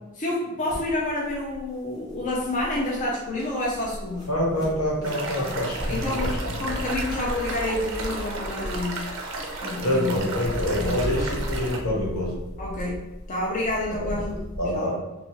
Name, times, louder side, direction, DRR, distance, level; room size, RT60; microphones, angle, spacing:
voice 1, 0.1-4.3 5.4-5.5 5.9-6.3 6.6-9.0 9.6-10.4 10.7-11.0 12.6-13.0 13.3-14.4 14.7-14.9, left 1 dB, 35° left, -4 dB, 0.4 m, -29 dB
sound 1, 0.7-14.7, equal, 20° left, 0.8 m, -36 dB
voice 2, 4.3-6.6 9.8-12.4 13.9-14.2 14.6-15.0, left 1 dB, 75° left, -3 dB, 1.0 m, -26 dB
sound 2, 5.0-11.8, right 2 dB, 60° right, 0.5 m, -34 dB
2.8 x 2.4 x 2.7 m, 1.0 s
head